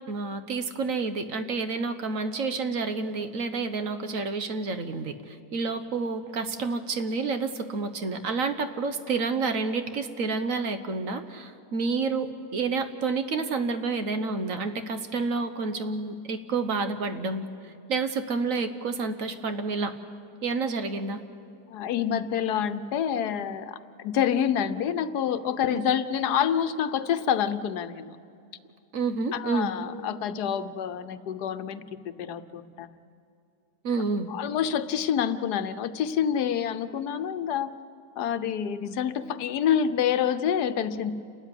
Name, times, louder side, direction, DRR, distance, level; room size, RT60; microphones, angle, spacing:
voice 1, 0.1-17.4 17.9-19.9 20.4-21.2 25.7-25.8 28.9-29.7 33.8-34.3, right 4 dB, 60° right, 9 dB, 1.4 m, -29 dB
voice 2, 21.7-28.2 29.3-32.9 34.3-37.7 38.2-41.1, left 8 dB, 85° left, 12 dB, 1.4 m, -27 dB
28.5 x 13.0 x 9.9 m, 2.6 s
omnidirectional pair, 1.7 m